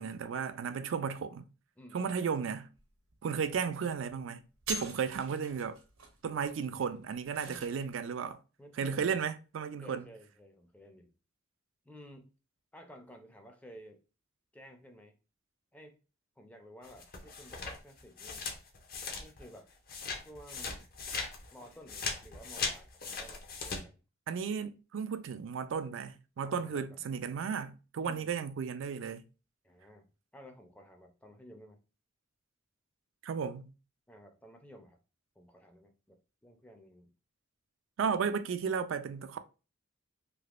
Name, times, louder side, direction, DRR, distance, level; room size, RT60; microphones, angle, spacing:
voice 1, 0.0-1.5 1.9-2.7 3.2-4.4 4.7-5.8 6.2-8.4 8.8-10.0 24.3-29.2 33.2-33.7 38.0-39.4, right 6 dB, 65° right, 0.3 m, -34 dB
voice 2, 1.8-2.1 7.5-7.7 8.6-9.2 9.8-11.1 11.8-12.3 12.7-14.0 14.5-15.1 15.7-16.0 16.4-18.5 19.2-19.7 20.2-20.9 21.5-24.0 26.4-27.0 28.0-28.4 29.6-31.8 34.1-35.0 35.4-37.1, equal, 5° left, 0.4 m, -54 dB
sound 1, 2.7-2.8 3.1-3.5 3.9-4.2 4.5-7.9, right 2 dB, 90° right, 0.9 m, -43 dB
sound 2, 16.8-19.6 19.9-23.8, left 4 dB, 45° left, 0.7 m, -39 dB
3.4 x 2.7 x 2.4 m
head